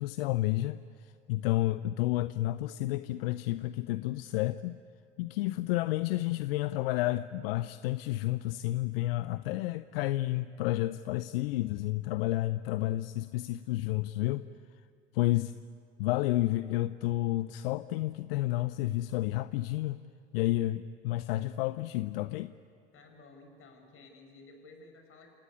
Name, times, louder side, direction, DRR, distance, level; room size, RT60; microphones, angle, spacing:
voice 1, 0.0-4.8 5.2-14.5 15.1-15.5 16.0-20.0 20.3-22.5, left 16 dB, 80° left, 0.6 m, -31 dB
voice 2, 22.9-25.4, left 3 dB, 45° left, 6.1 m, -54 dB
29.0 x 17.5 x 9.7 m
hypercardioid pair, 70°, 29 cm